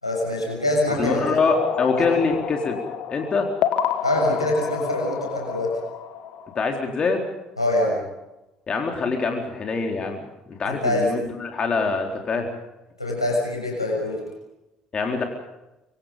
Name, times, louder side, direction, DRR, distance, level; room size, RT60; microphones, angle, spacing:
voice 1, 0.0-1.4 4.0-5.8 7.6-8.0 10.7-11.1 13.0-14.2, left 1 dB, 85° left, -1 dB, 6.7 m, -24 dB
voice 2, 0.9-2.8 3.1-3.5 6.6-7.2 8.7-12.5 14.9-15.2, left 4 dB, 35° left, 3 dB, 4.0 m, -24 dB
sound 1, 1.5-6.9, left 10 dB, 55° left, 1.7 m, -29 dB
26.0 x 25.0 x 5.4 m, 0.95 s
figure-of-eight pair, 55°, 3 cm